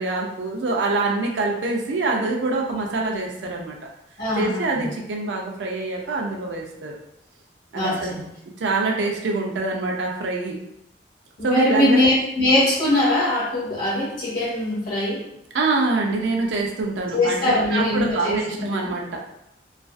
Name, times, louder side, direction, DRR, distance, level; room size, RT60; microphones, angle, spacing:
voice 1, 0.0-3.8 4.4-7.0 7.7-8.1 8.6-10.6 11.4-12.0 15.5-19.3, right 3 dB, 85° right, 0 dB, 0.5 m, -25 dB
voice 2, 4.2-4.9 7.7-8.2 11.4-15.2 17.1-18.9, left 1 dB, 50° left, -8 dB, 0.9 m, -22 dB
2.4 x 2.3 x 2.4 m, 0.82 s
head